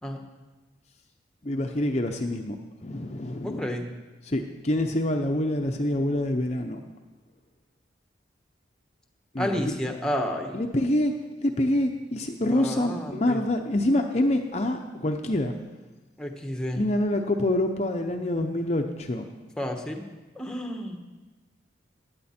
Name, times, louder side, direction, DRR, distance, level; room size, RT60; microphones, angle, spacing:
voice 1, 1.4-2.6 2.8-3.7 4.2-6.8 9.3-9.7 10.5-11.1 11.4-15.5 16.7-19.3, left 1 dB, 35° left, 3 dB, 0.7 m, -26 dB
voice 2, 3.4-3.8 9.4-10.6 12.5-13.4 16.2-16.8 19.6-20.1 20.3-21.0, equal, 5° left, 3 dB, 1.1 m, -31 dB
16.5 x 10.5 x 4.4 m, 1.2 s
head